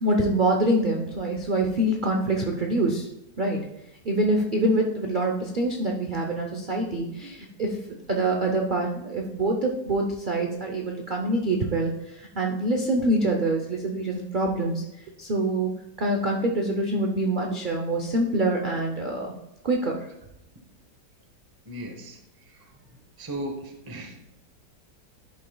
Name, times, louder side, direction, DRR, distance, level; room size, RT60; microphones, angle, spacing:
voice 1, 0.0-3.1 3.4-3.6 4.0-7.8 8.1-14.8 15.2-15.7 16.0-19.3 19.6-19.9, right 1 dB, 70° right, 1 dB, 0.4 m, -25 dB
voice 2, 21.7-22.2 22.5-22.6 23.2-24.2, right 1 dB, 20° right, 3 dB, 0.6 m, -36 dB
11.5 x 5.4 x 2.3 m, 0.88 s
omnidirectional pair, 1.9 m